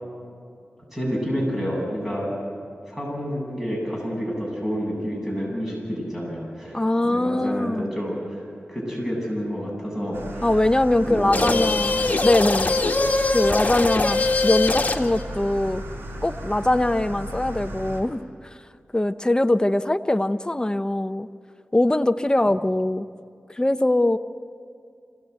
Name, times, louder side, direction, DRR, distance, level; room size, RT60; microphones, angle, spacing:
voice 1, 0.9-2.3 2.9-10.5 11.0-12.2, equal, 10° right, -3 dB, 8.0 m, -29 dB
voice 2, 6.7-7.9 10.4-12.0 12.2-12.8 13.3-15.8 16.2-18.2 18.9-21.3 21.7-23.1 23.5-24.2, left 1 dB, 20° left, 11 dB, 0.7 m, -22 dB
sound 1, 10.1-18.0, right 1 dB, 90° right, 5.2 m, -35 dB
sound 2, 11.3-15.2, left 3 dB, 40° left, 1.7 m, -22 dB
26.0 x 17.5 x 8.2 m, 2.4 s
wide cardioid pair, 65°, 4 cm